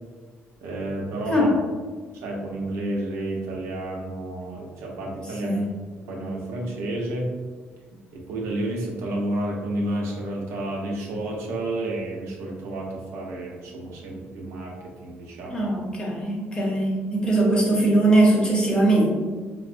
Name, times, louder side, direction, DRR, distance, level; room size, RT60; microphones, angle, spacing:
voice 1, 0.6-1.5 2.1-5.6 6.1-7.3 8.1-15.6, right 1 dB, 80° right, -2 dB, 0.7 m, -30 dB
voice 2, 1.3-1.6 5.4-5.7 15.5-19.1, right 2 dB, 20° left, -3 dB, 0.8 m, -21 dB
4.0 x 2.0 x 2.5 m, 1.5 s
cardioid pair, 115°, 5 cm